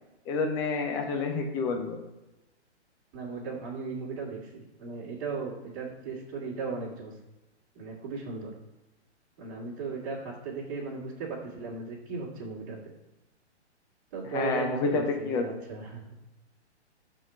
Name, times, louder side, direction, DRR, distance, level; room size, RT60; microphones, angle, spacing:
voice 1, 0.3-2.0 14.2-15.5, left 4 dB, 10° left, 4 dB, 0.4 m, -29 dB
voice 2, 3.1-4.4 4.8-7.1 7.8-8.5 9.4-11.3 11.5-12.8 14.1-14.8 15.4-15.8, right 4 dB, 35° right, -6 dB, 2.1 m, -36 dB
6.2 x 3.8 x 5.7 m, 1.0 s
hypercardioid pair, 130°, 34 cm